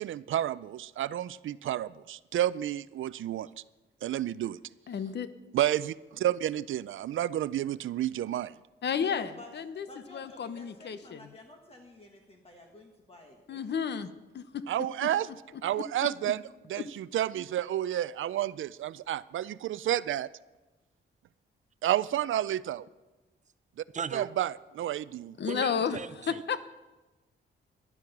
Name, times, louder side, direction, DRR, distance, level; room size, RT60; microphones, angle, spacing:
voice 1, 0.0-3.5 4.0-4.6 5.5-5.9 6.2-8.5 14.7-15.3 15.6-16.4 16.7-20.3 21.8-22.9 24.1-25.4, right 12 dB, 80° right, 17 dB, 0.4 m, -30 dB
voice 2, 4.9-5.3 8.8-9.8 10.1-11.2 13.5-14.1 14.3-14.6 16.8-16.9 25.4-26.0 26.3-26.6, left 7 dB, 60° left, 12 dB, 0.8 m, -32 dB
voice 3, 9.0-9.5 9.9-13.6, left 2 dB, 30° left, 2 dB, 1.6 m, -50 dB
voice 4, 23.9-24.3 25.5-26.4, right 6 dB, 35° right, 14 dB, 0.6 m, -37 dB
14.5 x 11.0 x 5.9 m, 1.1 s
wide cardioid pair, 140°, 20 cm